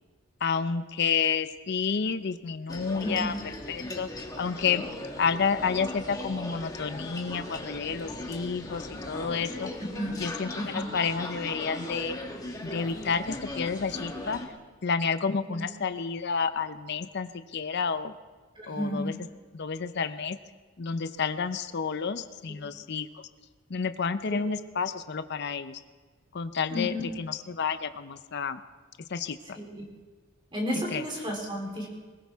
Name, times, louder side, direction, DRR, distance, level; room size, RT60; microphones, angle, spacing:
voice 1, 0.4-3.3 3.7-4.1 4.4-4.8 5.2-9.7 10.2-12.2 12.6-14.4 14.8-18.1 18.7-19.1 19.5-20.4 20.8-23.2 23.7-25.8 26.3-28.6 29.1-29.6 30.9-31.0, left 5 dB, 55° left, 11 dB, 0.6 m, -30 dB
sound 1, 2.7-14.5, left 1 dB, 20° left, 1.6 m, -38 dB
voice 2, 3.0-3.4 9.8-10.1 10.6-10.9 15.5-15.7 18.6-19.2 24.3-24.4 26.7-27.1 29.5-29.8 30.5-31.9, equal, 25° right, -1 dB, 3.7 m, -32 dB
21.0 x 18.5 x 3.6 m, 1.4 s
head